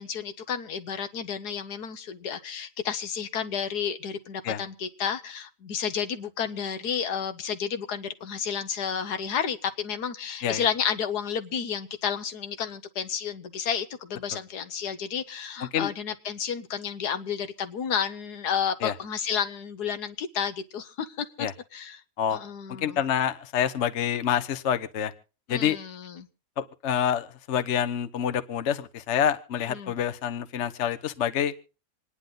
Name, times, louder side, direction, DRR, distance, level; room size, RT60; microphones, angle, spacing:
voice 1, 0.0-21.5 21.7-22.0 22.3-23.0 25.5-26.3 29.7-29.9, left 7 dB, 70° left, 10 dB, 1.5 m, -31 dB
voice 2, 15.6-15.9 18.8-18.9 21.4-21.5 22.2-22.4 22.8-25.1 25.5-25.8 26.6-31.5, left 9 dB, 50° left, 11 dB, 1.1 m, -27 dB
27.0 x 9.9 x 3.9 m, 0.36 s
omnidirectional pair, 1.8 m